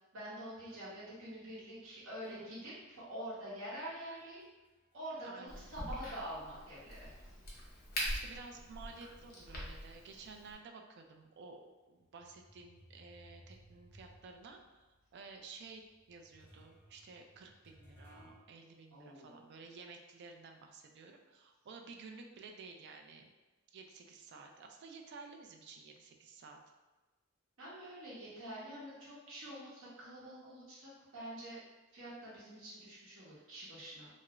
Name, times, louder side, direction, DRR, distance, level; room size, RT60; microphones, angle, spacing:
voice 1, 0.1-4.4 4.9-7.1 18.9-19.4 27.6-31.6 31.9-34.1, right 1 dB, 90° right, -8 dB, 0.8 m, -46 dB
sound 1, 0.5-5.5 5.8-10.5 11.1-11.2 12.0-18.4, equal, 10° left, 0.6 m, -64 dB
voice 2, 5.2-5.7 8.1-14.8 15.1-23.3 23.7-26.6, right 4 dB, 55° right, 3 dB, 0.3 m, -53 dB
Crack, 5.5-10.5, equal, 50° left, 0.7 m, -43 dB
2.3 x 2.0 x 2.9 m, 1.1 s
head